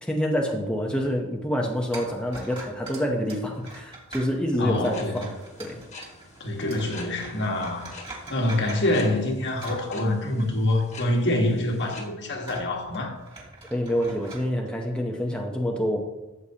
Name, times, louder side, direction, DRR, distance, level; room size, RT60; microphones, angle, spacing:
voice 1, 0.0-5.8 13.7-16.0, equal, 5° left, 0 dB, 0.8 m, -27 dB
sound 1, 1.9-10.6 10.9-11.0 11.7-14.4, right 2 dB, 25° right, 2.7 m, -44 dB
voice 2, 4.6-5.2 6.4-7.9 8.3-13.2, left 1 dB, 50° left, 2 dB, 1.5 m, -26 dB
sound 2, 4.8-12.1, left 3 dB, 30° left, 1.6 m, -46 dB
13.5 x 7.9 x 2.9 m, 1.1 s
head